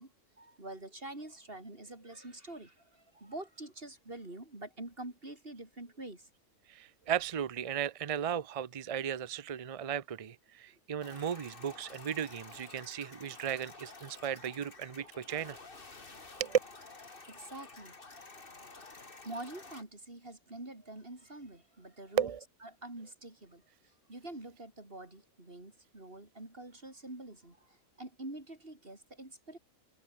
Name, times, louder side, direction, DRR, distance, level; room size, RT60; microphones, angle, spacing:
voice 1, 0.0-6.3 12.8-12.9 17.2-18.0 18.3-22.3 22.6-29.6, right 2 dB, 40° right, 5.2 m, -46 dB
voice 2, 6.7-15.6 16.4-16.6 22.2-22.4, right 8 dB, 65° right, 0.3 m, -35 dB
sound 1, 11.0-19.8, left 3 dB, 35° left, 2.3 m, -51 dB
omnidirectional pair, 1.5 m